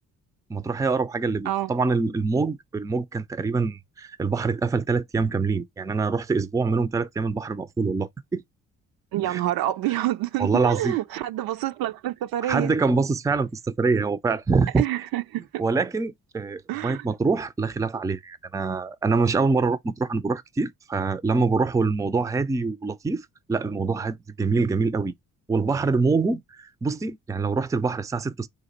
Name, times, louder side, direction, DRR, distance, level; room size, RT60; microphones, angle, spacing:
voice 1, 0.5-8.4 9.2-9.4 10.4-11.0 12.4-14.9 15.6-25.1 25.5-28.5, right 4 dB, 10° right, 0.4 m, -25 dB
voice 2, 9.1-12.7 14.8-15.6 16.7-17.0, right 14 dB, 60° right, 0.5 m, -27 dB
3.9 x 2.5 x 4.2 m
hypercardioid pair, 45°, 40 cm